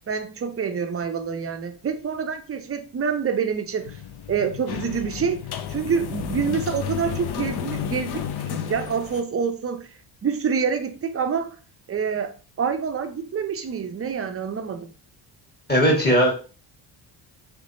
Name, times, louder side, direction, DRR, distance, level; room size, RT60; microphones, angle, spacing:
voice 1, 0.1-4.0 4.3-9.9 10.2-11.6 11.9-14.9, right 6 dB, 30° right, 0.5 m, -27 dB
sound 1, 3.8-9.2, left 9 dB, 50° left, 0.5 m, -32 dB
voice 2, 15.7-16.3, equal, 20° left, 1.3 m, -18 dB
3.3 x 3.2 x 2.6 m
cardioid pair, 80°, 50 cm